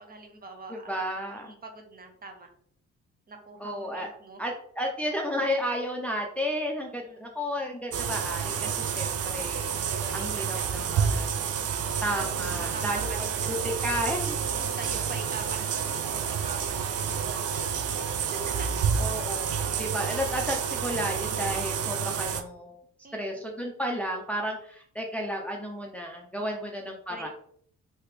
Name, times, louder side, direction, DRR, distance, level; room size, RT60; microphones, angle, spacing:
voice 1, 0.0-2.5 3.3-4.4 6.8-7.3 9.7-11.1 11.5-13.7 14.5-18.9 23.0-23.6 26.4-26.8 27.1-27.3, right 3 dB, 30° right, 4 dB, 0.8 m, -44 dB
voice 2, 0.7-1.5 3.6-4.1 4.4-9.7 10.1-11.4 12.0-13.3 13.6-14.7 19.0-22.8 23.1-27.3, equal, 5° left, 1 dB, 0.6 m, -32 dB
sound 1, 7.9-22.4, right 7 dB, 55° right, 0.5 m, -29 dB
3.2 x 2.9 x 3.2 m, 0.63 s
cardioid pair, 90°, 30 cm